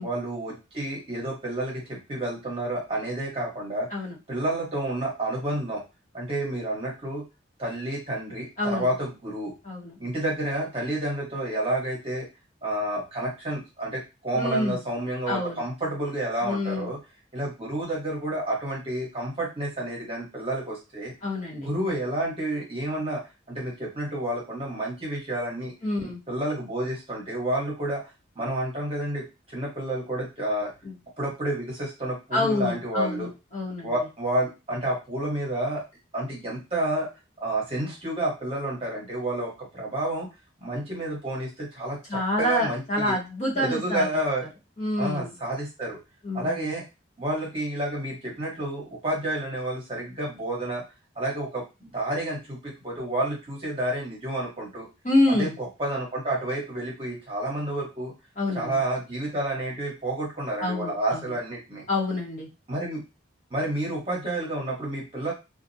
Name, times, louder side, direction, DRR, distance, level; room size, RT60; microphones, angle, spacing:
voice 1, 0.0-3.9 4.3-5.8 6.1-7.2 7.6-9.5 10.0-12.3 12.6-17.0 17.3-21.1 21.5-23.2 23.5-25.7 26.0-28.0 28.4-30.7 31.2-33.3 33.8-35.8 36.1-37.1 37.4-40.3 40.6-43.2 43.5-44.5 45.0-46.0 46.3-46.8 47.2-50.8 51.2-54.9 55.4-58.1 58.5-61.8 62.7-63.0 63.5-65.3, right 1 dB, 30° right, -4 dB, 0.9 m, -30 dB
voice 2, 9.6-10.0 14.3-14.8 15.3-15.6 16.4-16.9 21.2-21.7 25.8-26.2 30.8-30.9 32.3-33.9 42.1-44.1 44.8-45.3 46.2-46.6 55.0-55.5 58.4-58.7 60.6-61.2 61.9-62.5, left 1 dB, 35° left, -5 dB, 0.9 m, -27 dB
2.4 x 2.1 x 2.6 m, 0.26 s
head